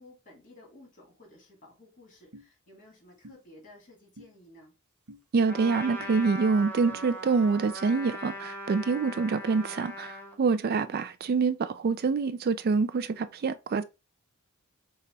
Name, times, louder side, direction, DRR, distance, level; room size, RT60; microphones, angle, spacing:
voice 1, 0.0-4.7, left 1 dB, 40° left, 2.7 m, -54 dB
sound 1, 2.3-2.5 3.2-3.4 4.2-4.3 5.1-5.2 6.0-6.1 6.9-7.1, equal, 85° right, 0.8 m, -48 dB
voice 2, 5.3-13.8, right 4 dB, 45° right, 0.4 m, -26 dB
Trumpet, 5.5-10.4, equal, 10° left, 1.1 m, -40 dB
6.6 x 2.4 x 3.2 m
head